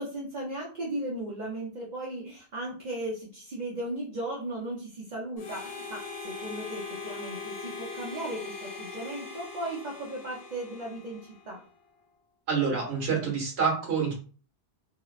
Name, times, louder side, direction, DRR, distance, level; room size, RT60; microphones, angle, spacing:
voice 1, 0.0-11.6, right 1 dB, 50° right, -4 dB, 0.7 m, -36 dB
Harmonica, 5.4-11.7, left 4 dB, 85° left, 1.0 m, -41 dB
voice 2, 12.5-14.1, right 5 dB, 70° right, -1 dB, 1.2 m, -27 dB
2.8 x 2.0 x 2.3 m, 0.40 s
omnidirectional pair, 1.1 m